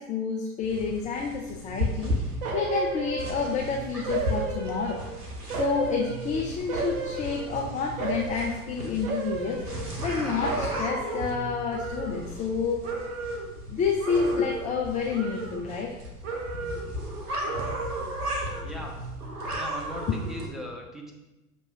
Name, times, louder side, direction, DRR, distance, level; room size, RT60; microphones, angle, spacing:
voice 1, 0.0-2.2 2.5-5.0 5.6-12.8 13.7-15.9, left 5 dB, 15° left, 0 dB, 0.4 m, -29 dB
sound 1, 0.6-20.5, equal, 90° right, 1.1 m, -35 dB
sound 2, 2.4-3.7 4.1-5.1 5.5-7.6 8.0-8.6 9.0-10.2 10.4-12.6 12.8-13.5 14.0-14.8 15.1-16.0 16.2-17.0 17.4-18.2 18.6-18.7, right 4 dB, 60° right, 1.1 m, -34 dB
voice 2, 18.6-19.1 19.5-21.1, equal, ahead, -1 dB, 0.9 m, -39 dB
6.6 x 3.0 x 5.3 m, 1.0 s
figure-of-eight pair, 85°, 45 cm